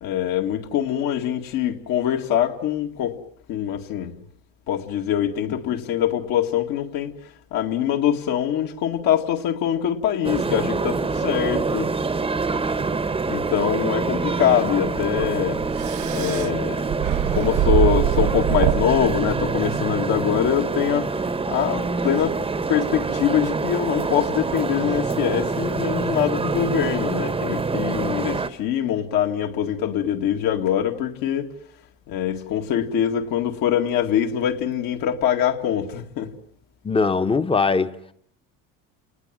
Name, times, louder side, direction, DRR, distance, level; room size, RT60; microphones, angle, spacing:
voice 1, 0.0-3.2 3.5-4.1 4.7-7.1 7.5-11.9 13.3-15.6 16.1-16.9 17.3-21.1 21.5-22.4 22.7-31.5 32.1-36.3, left 10 dB, 65° left, 2.3 m, -23 dB
voice 2, 5.5-5.8 36.8-38.0, left 4 dB, 15° left, 1.0 m, -22 dB
sound 1, 10.2-28.5, right 4 dB, 15° right, 1.0 m, -26 dB
sound 2, 14.8-19.9, right 13 dB, 65° right, 1.0 m, -25 dB
29.5 x 19.0 x 7.6 m
cardioid pair, 120°, 37 cm